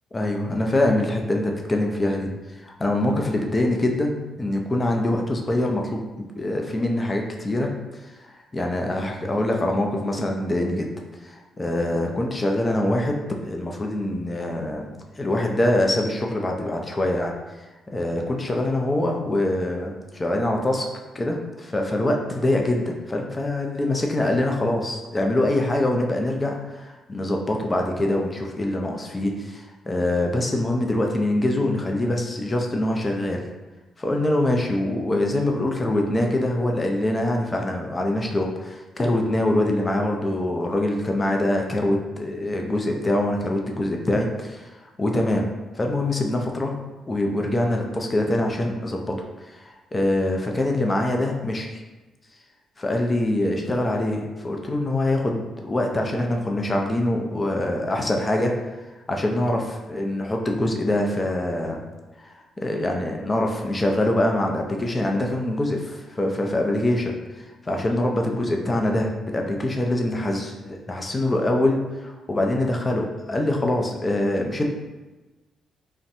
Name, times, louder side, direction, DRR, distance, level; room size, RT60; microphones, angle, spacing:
voice 1, 0.1-7.7 8.3-10.9 11.2-17.3 17.9-20.9 21.1-33.4 34.0-45.5 45.8-46.7 47.1-49.1 49.4-51.7 52.8-58.7 59.1-61.8 62.2-62.3 62.6-74.6, left 1 dB, 25° left, 2 dB, 0.5 m, -24 dB
4.0 x 2.1 x 2.6 m, 1.2 s
cardioid pair, 90°, 0 cm